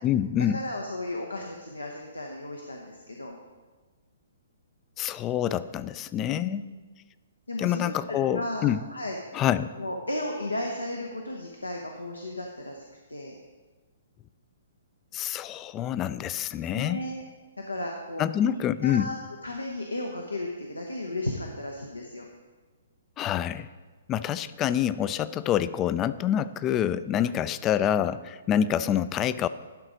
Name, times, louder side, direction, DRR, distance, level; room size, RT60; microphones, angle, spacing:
voice 1, 0.0-0.6 5.0-6.6 7.6-8.8 9.3-9.7 15.1-17.0 18.2-19.1 23.2-23.7 24.1-29.5, left 10 dB, 25° left, 15 dB, 0.3 m, -26 dB
voice 2, 0.5-3.4 6.3-6.8 7.5-9.2 9.8-12.8 13.1-13.4 16.7-17.2 17.6-22.3 24.7-24.8, left 1 dB, 90° left, 1 dB, 0.8 m, -35 dB
11.5 x 4.0 x 4.9 m, 1.3 s
figure-of-eight pair, 125°, 0 cm